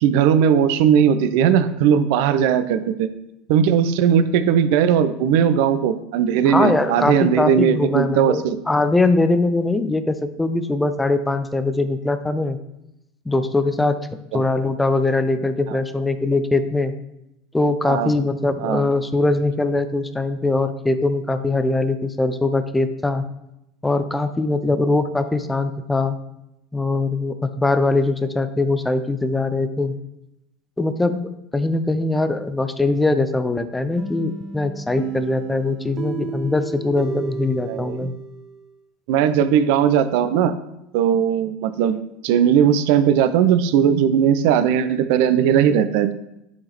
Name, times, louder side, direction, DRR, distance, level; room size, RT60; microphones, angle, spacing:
voice 1, 0.0-3.1 3.5-8.6 14.3-14.4 15.7-15.8 17.8-18.1 18.6-18.9 37.7-38.1 39.1-40.5 40.9-42.0 42.2-46.1, right 8 dB, 60° right, 12 dB, 0.4 m, -18 dB
voice 2, 6.5-12.6 13.3-13.9 14.3-16.9 17.5-23.3 23.8-26.2 26.7-30.0 30.8-38.1, left 2 dB, 10° left, 10 dB, 0.6 m, -21 dB
sound 1, 34.0-38.7, right 6 dB, 35° right, 0.8 m, -33 dB
9.5 x 3.7 x 3.0 m, 0.86 s
figure-of-eight pair, 75°, 0 cm